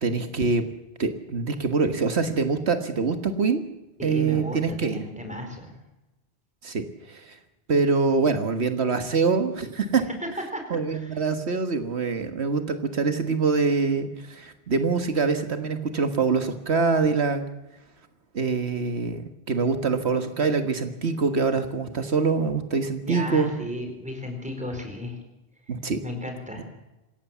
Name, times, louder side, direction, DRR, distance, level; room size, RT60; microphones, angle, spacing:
voice 1, 0.0-0.6 1.0-3.6 4.0-5.0 6.6-7.4 7.7-10.0 10.7-17.4 18.3-23.5 25.7-26.0, right 4 dB, 80° right, 8 dB, 1.7 m, -24 dB
voice 2, 4.0-5.7 10.1-10.2 10.5-10.6 10.9-11.2 23.0-25.2 26.0-26.6, left 1 dB, 5° right, 4 dB, 4.6 m, -34 dB
27.0 x 16.0 x 7.3 m, 0.99 s
omnidirectional pair, 1.1 m